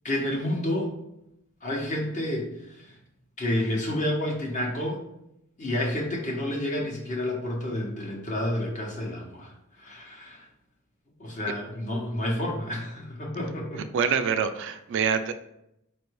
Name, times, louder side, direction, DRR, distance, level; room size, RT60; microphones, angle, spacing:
voice 1, 0.0-0.9 1.6-2.5 2.8-2.9 3.4-5.0 5.6-9.5 9.8-10.4 11.2-13.8, left 1 dB, 35° left, -1 dB, 1.0 m, -29 dB
voice 2, 13.9-15.3, right 6 dB, 55° right, 9 dB, 0.3 m, -25 dB
4.3 x 2.6 x 4.6 m, 0.81 s
head